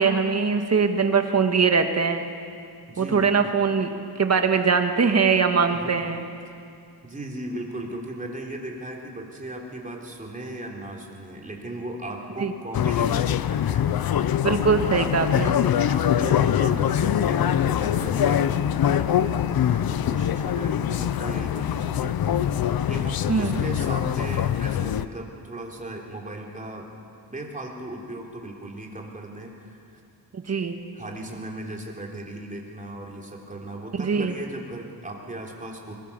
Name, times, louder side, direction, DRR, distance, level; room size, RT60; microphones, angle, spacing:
voice 1, 0.0-2.2 3.0-3.9 4.2-6.2 12.4-12.5 14.4-15.6 23.3-23.5 30.3-30.7 34.0-34.3, right 5 dB, 40° right, 6 dB, 1.7 m, -22 dB
voice 2, 2.9-3.3 5.7-6.0 7.0-15.0 15.8-26.9 27.3-30.0 30.9-35.9, right 1 dB, 20° right, 0 dB, 3.5 m, -37 dB
sound 1, 12.7-25.1, left 10 dB, 65° left, 0.7 m, -23 dB
22.5 x 22.0 x 7.0 m, 2.4 s
wide cardioid pair, 130°, 39 cm